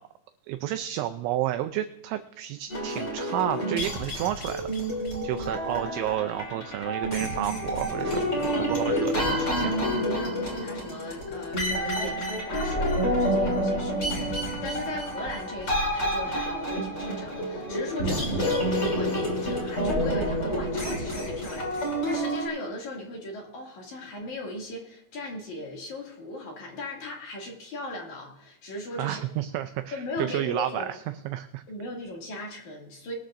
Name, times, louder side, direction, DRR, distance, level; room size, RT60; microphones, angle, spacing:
voice 1, 0.5-9.7 29.0-31.0 31.3-31.6, right 13 dB, 85° right, 8 dB, 2.6 m, -31 dB
sound 1, 2.7-22.5, equal, 25° left, 2.7 m, -28 dB
voice 2, 8.4-9.2 10.0-29.2 29.9-30.9 31.7-33.1, left 1 dB, 45° left, -1 dB, 2.9 m, -37 dB
22.0 x 13.0 x 2.6 m, 0.85 s
omnidirectional pair, 5.9 m